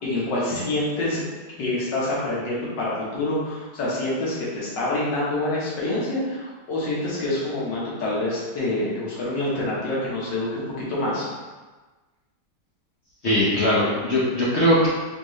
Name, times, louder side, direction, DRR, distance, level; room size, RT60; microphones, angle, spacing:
voice 1, 0.0-1.2 1.6-11.3, left 2 dB, 85° left, -7 dB, 1.8 m, -26 dB
voice 2, 13.2-14.9, equal, 55° left, -7 dB, 0.8 m, -20 dB
4.3 x 2.9 x 3.1 m, 1.3 s
omnidirectional pair, 1.9 m